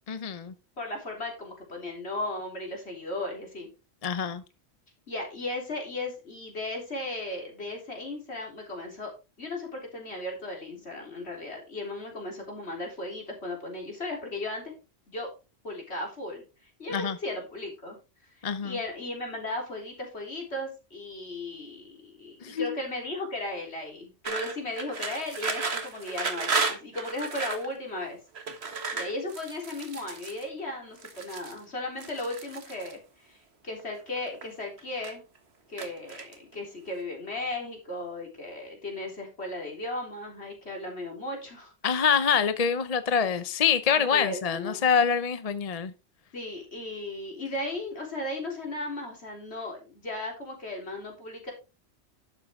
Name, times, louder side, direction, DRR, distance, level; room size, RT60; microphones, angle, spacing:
voice 1, 0.1-0.5 4.0-4.4 16.9-17.2 18.4-18.8 22.4-22.7 41.8-45.9, left 7 dB, 40° left, 0.7 m, -25 dB
voice 2, 0.8-3.7 5.1-9.1 9.4-14.7 15.1-15.3 15.6-18.0 18.4-28.2 28.9-35.2 35.7-41.7 43.9-44.9 46.3-51.5, left 2 dB, 75° left, 3.8 m, -36 dB
sound 1, 24.2-27.7 28.3-30.4 31.0-31.6 32.0-32.9 33.8-34.5 34.8-35.4 35.8-36.5, right 4 dB, 75° right, 1.8 m, -33 dB
11.5 x 7.6 x 3.6 m
omnidirectional pair, 1.1 m